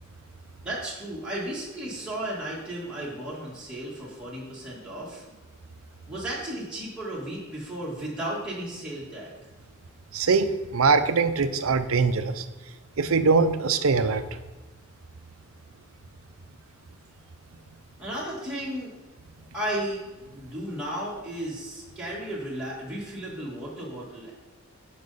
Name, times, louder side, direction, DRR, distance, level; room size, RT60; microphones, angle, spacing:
voice 1, 0.6-5.2 6.1-9.4 18.0-18.9 19.5-24.3, right 1 dB, 5° right, -7 dB, 1.9 m, -34 dB
voice 2, 10.1-12.4 13.0-14.2, right 4 dB, 70° right, 10 dB, 0.6 m, -22 dB
11.0 x 5.3 x 4.1 m, 1.1 s
head